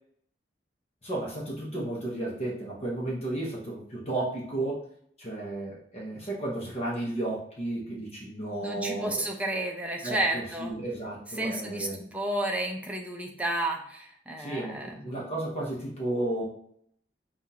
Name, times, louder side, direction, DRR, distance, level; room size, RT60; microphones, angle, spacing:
voice 1, 1.0-4.8 5.2-9.2 10.0-12.0 14.4-16.4, right 2 dB, 35° left, -4 dB, 1.0 m, -33 dB
voice 2, 8.6-10.7 11.4-11.9 12.1-15.1, right 1 dB, 10° right, 1 dB, 0.6 m, -31 dB
5.8 x 2.4 x 2.8 m, 0.66 s
head